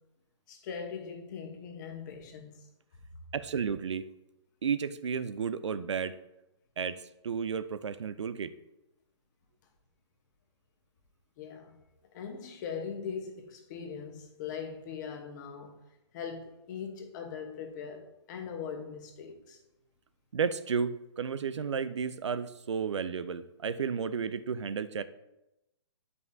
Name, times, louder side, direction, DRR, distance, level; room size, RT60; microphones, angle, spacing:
voice 1, 0.5-2.7 11.4-11.8 12.1-15.8 16.1-19.6, left 6 dB, 40° left, 1.1 m, -40 dB
voice 2, 3.3-4.0 4.6-6.1 6.8-7.0 7.2-8.5 20.3-25.0, right 6 dB, 80° right, 0.4 m, -32 dB
7.5 x 5.4 x 2.7 m
hypercardioid pair, 135°, 15 cm